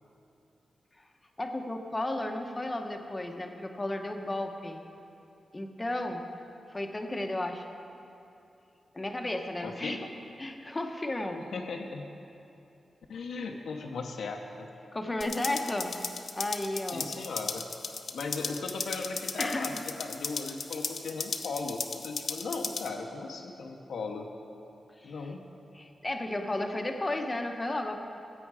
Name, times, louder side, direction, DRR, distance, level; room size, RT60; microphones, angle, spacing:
voice 1, 1.4-4.8 5.5-6.2 6.7-7.7 8.9-10.0 10.4-11.4 14.9-16.1 16.4-17.1 19.4-19.7 25.0-25.3 25.7-28.0, left 1 dB, 20° left, 4 dB, 1.0 m, -33 dB
voice 2, 9.6-10.0 11.5-12.1 13.1-14.7 16.9-17.7 18.1-24.3 25.0-25.4, left 4 dB, 85° left, 2 dB, 0.8 m, -37 dB
sound 1, 15.2-22.9, left 4 dB, 60° left, 0.7 m, -37 dB
15.0 x 8.5 x 4.8 m, 2.8 s
wide cardioid pair, 95°, 0 cm